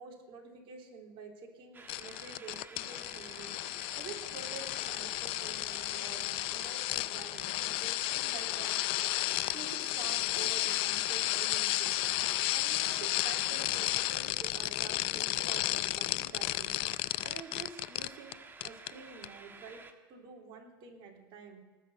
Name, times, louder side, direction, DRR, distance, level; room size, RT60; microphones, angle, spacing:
voice 1, 0.0-3.5 3.9-8.8 9.2-12.0 12.5-18.4 18.6-21.6, right 5 dB, 45° right, 0 dB, 3.4 m, -48 dB
sound 1, 1.7-19.9, right 3 dB, 15° right, 1.3 m, -53 dB
sound 2, 1.9-18.3 18.6-18.9 19.2-19.3, left 18 dB, 50° left, 0.4 m, -33 dB
18.5 x 6.2 x 7.9 m, 1.4 s
hypercardioid pair, 110°, 12 cm